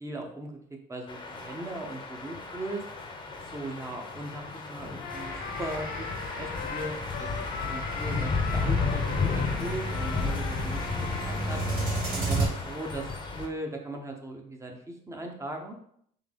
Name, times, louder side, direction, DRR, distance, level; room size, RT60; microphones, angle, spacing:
voice 1, 0.0-2.8 3.5-6.1 6.4-11.6 12.1-13.1 13.3-15.8, right 2 dB, 15° right, 2 dB, 0.8 m, -38 dB
sound 1, 1.1-13.5, left 4 dB, 25° left, 0.7 m, -33 dB
Trumpet, 5.0-12.5, left 8 dB, 60° left, 0.4 m, -40 dB
sound 2, 5.1-12.5, right 3 dB, 60° right, 1.7 m, -34 dB
3.8 x 3.2 x 3.5 m, 0.68 s
cardioid pair, 110°, 17 cm